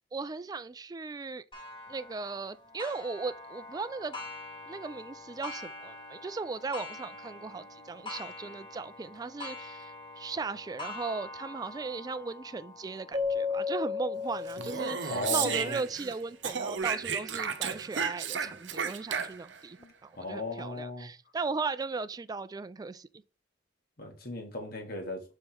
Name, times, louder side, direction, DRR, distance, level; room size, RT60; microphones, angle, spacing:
voice 1, 0.1-1.4 1.9-4.2 4.7-23.1, right 4 dB, 20° right, 0.3 m, -37 dB
Clock, 1.5-16.8 17.4-17.5 18.0-18.1 19.1-19.2, left 2 dB, 25° left, 1.4 m, -46 dB
Keyboard (musical), 13.1-15.6, left 5 dB, 40° right, 0.9 m, -33 dB
Speech, 14.5-16.1 16.4-19.6, right 7 dB, 80° right, 0.8 m, -33 dB
voice 2, 15.1-15.8 19.8-21.1 24.0-25.2, left 2 dB, 55° left, 1.9 m, -37 dB
6.3 x 3.7 x 4.5 m
head